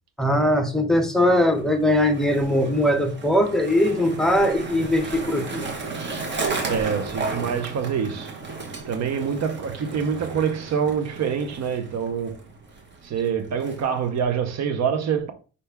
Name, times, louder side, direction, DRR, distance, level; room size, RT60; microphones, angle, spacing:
voice 1, 0.2-5.7, left 1 dB, ahead, 0.8 m, -20 dB
Skateboard, 1.5-14.2, right 3 dB, 35° right, 1.3 m, -34 dB
voice 2, 6.7-8.4 8.9-12.4 13.0-15.3, right 7 dB, 60° right, 0.8 m, -26 dB
5.4 x 2.7 x 3.4 m
cardioid pair, 90°, 30 cm